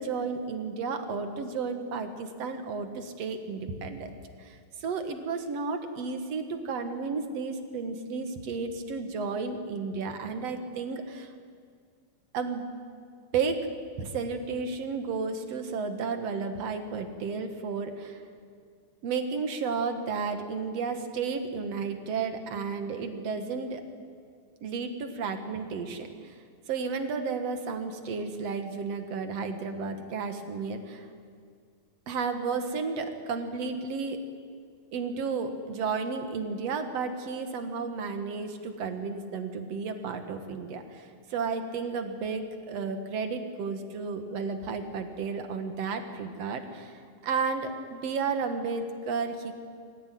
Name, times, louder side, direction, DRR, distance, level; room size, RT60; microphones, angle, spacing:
voice 1, 0.0-4.1 4.4-11.3 12.3-12.6 13.3-13.7 14.0-18.2 19.0-23.8 24.6-26.4 26.7-31.1 32.1-34.2 34.9-49.5, right 5 dB, 60° right, 7 dB, 2.5 m, -32 dB
25.5 x 15.0 x 9.4 m, 2.1 s
omnidirectional pair, 3.6 m